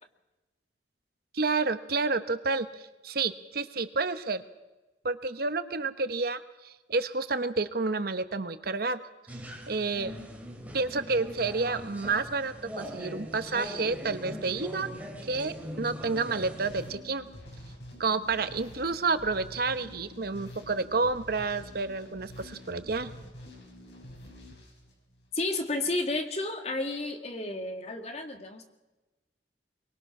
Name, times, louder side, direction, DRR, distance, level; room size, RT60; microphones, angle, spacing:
voice 1, 1.3-4.4 5.0-9.0 9.7-10.1 10.7-14.9 15.2-17.3 18.0-23.1, right 4 dB, 55° right, 11 dB, 1.0 m, -30 dB
sound 1, 9.3-16.9, equal, 10° right, 3.4 m, -41 dB
sound 2, 16.6-25.5, left 1 dB, 75° left, 6.2 m, -48 dB
voice 2, 25.3-28.6, left 2 dB, 35° left, 5 dB, 2.0 m, -32 dB
23.5 x 21.0 x 6.1 m, 1.1 s
head